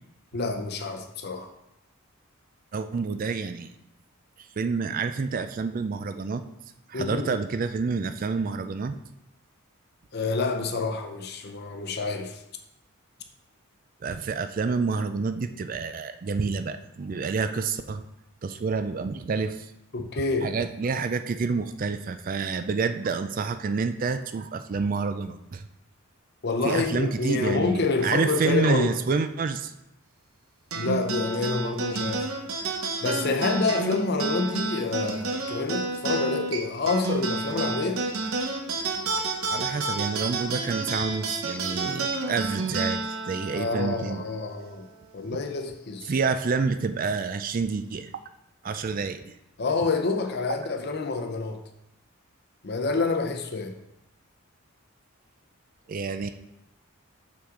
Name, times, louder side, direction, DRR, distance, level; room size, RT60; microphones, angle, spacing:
voice 1, 0.3-1.5 6.9-7.3 10.1-12.4 19.9-20.5 26.4-29.0 30.7-32.2 33.0-38.0 43.5-44.9 45.1-46.1 49.6-51.6 52.6-53.8, left 3 dB, 50° left, 0.7 m, -27 dB
voice 2, 2.7-3.7 4.6-6.4 6.9-9.0 14.0-18.0 18.4-19.7 20.4-25.6 26.6-29.7 39.5-44.2 46.1-48.2 48.6-49.3 50.5-50.6 55.9-56.3, right 4 dB, 40° right, 0.3 m, -28 dB
sound 1, 30.7-45.5, right 3 dB, 80° right, 0.9 m, -30 dB
6.4 x 5.8 x 3.8 m
head